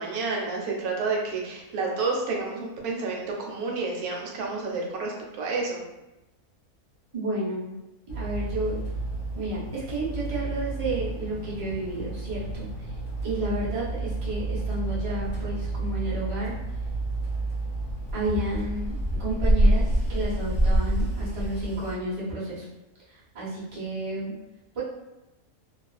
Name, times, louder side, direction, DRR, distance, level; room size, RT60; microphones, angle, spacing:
voice 1, 0.0-5.8, right 3 dB, 80° right, -1 dB, 1.1 m, -30 dB
voice 2, 7.1-7.7 8.1-8.8 9.4-12.9 13.2-16.6 18.1-22.7 23.1-24.3 24.7-24.8, right 1 dB, 35° right, -8 dB, 0.5 m, -31 dB
sound 1, 8.1-21.9, right 1 dB, 35° left, 0.7 m, -28 dB
2.3 x 2.3 x 2.3 m, 0.95 s
omnidirectional pair, 1.6 m